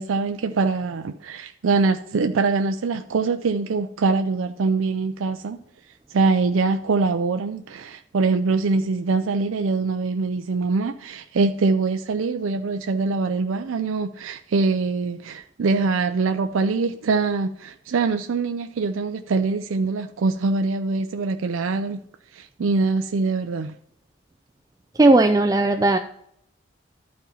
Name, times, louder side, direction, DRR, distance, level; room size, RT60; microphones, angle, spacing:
voice 1, 0.0-5.6 6.1-22.0 22.3-23.7, right 4 dB, 80° right, 0.4 m, -23 dB
voice 2, 25.0-26.0, right 2 dB, 15° right, 0.3 m, -16 dB
11.5 x 4.3 x 5.5 m
head